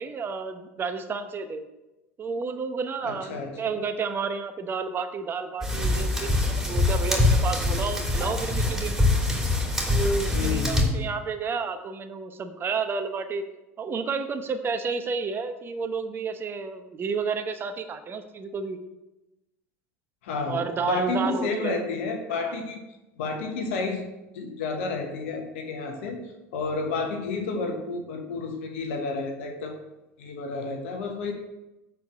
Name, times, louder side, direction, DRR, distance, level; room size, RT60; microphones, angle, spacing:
voice 1, 0.0-1.6 2.2-9.0 9.9-13.4 13.8-18.8 20.5-21.8 22.3-22.5, right 5 dB, 35° right, 9 dB, 1.0 m, -31 dB
voice 2, 3.0-3.7 10.3-11.1 20.2-22.8 23.2-24.0 24.3-26.2 26.5-29.7 30.2-31.3, left 3 dB, 70° left, 4 dB, 1.2 m, -30 dB
sound 1, 5.6-10.8, left 2 dB, 5° right, 3.1 m, -24 dB
8.1 x 4.6 x 7.1 m, 1.0 s
hypercardioid pair, 80°, 7 cm